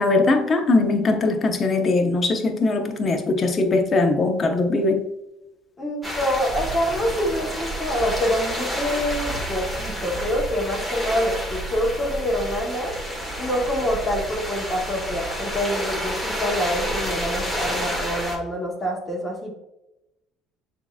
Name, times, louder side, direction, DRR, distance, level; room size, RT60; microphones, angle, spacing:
voice 1, 0.0-5.0, left 3 dB, 40° left, 5 dB, 0.8 m, -20 dB
voice 2, 5.8-12.9 13.4-19.5, equal, 25° left, -3 dB, 1.3 m, -26 dB
sound 1, 6.0-18.4, equal, ahead, 1.6 m, -29 dB
6.8 x 2.9 x 2.4 m, 0.90 s
hypercardioid pair, 65°, 0 cm